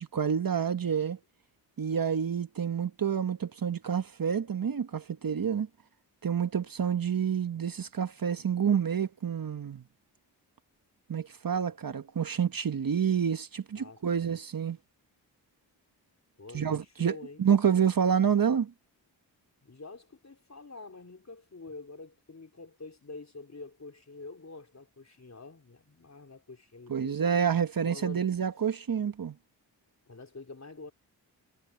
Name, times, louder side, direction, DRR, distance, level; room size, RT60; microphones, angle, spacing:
voice 1, 0.1-1.2 1.8-5.7 6.2-9.8 11.1-14.8 16.5-18.7 26.9-29.3, right 7 dB, 50° right, 1.2 m, -28 dB
voice 2, 13.7-14.4 16.4-17.4 19.6-27.2 27.7-28.3 30.1-30.9, left 3 dB, 35° left, 4.1 m, -47 dB
cardioid pair, 45°, 44 cm